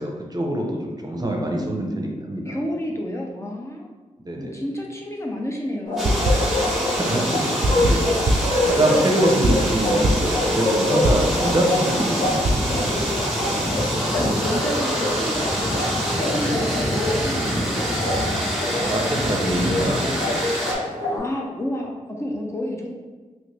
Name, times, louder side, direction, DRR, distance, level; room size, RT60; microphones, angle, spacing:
voice 1, 0.0-2.6 4.2-4.6 6.7-8.0 8.7-13.0 13.3-13.8 18.8-20.4, right 1 dB, 30° right, 0 dB, 0.7 m, -25 dB
voice 2, 2.4-3.9 4.4-6.2 7.2-7.5 14.1-15.9 16.2-18.1 21.1-22.9, left 1 dB, 20° left, -1 dB, 0.5 m, -30 dB
Bark, 5.9-21.2, left 2 dB, 90° left, 1.3 m, -26 dB
sound 1, 6.0-20.7, equal, ahead, 1.2 m, -26 dB
sound 2, 6.0-6.8 7.0-11.5 11.9-12.5, right 1 dB, 75° right, 0.4 m, -23 dB
3.0 x 2.5 x 3.2 m, 1.4 s
cardioid pair, 45°, 14 cm